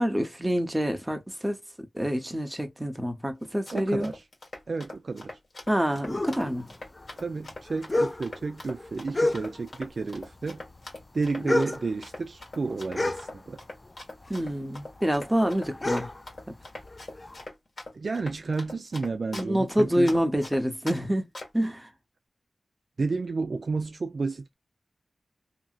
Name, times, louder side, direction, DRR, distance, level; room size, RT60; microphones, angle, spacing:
voice 1, 0.0-1.6 1.9-4.1 5.7-6.7 11.4-11.5 14.3-16.1 16.5-16.6 19.3-21.3 21.5-21.9, equal, 10° right, 0.8 m, -27 dB
Run, 3.4-21.0 21.3-21.7, left 2 dB, 65° left, 1.5 m, -42 dB
voice 2, 3.7-4.2 4.7-5.3 7.2-10.6 11.1-13.6 17.9-20.2 23.0-24.5, right 4 dB, 65° right, 0.4 m, -31 dB
sound 1, 6.0-9.9 10.1-13.9 14.2-17.4, left 2 dB, 30° left, 0.3 m, -31 dB
2.8 x 2.7 x 2.4 m
wide cardioid pair, 75°, 0 cm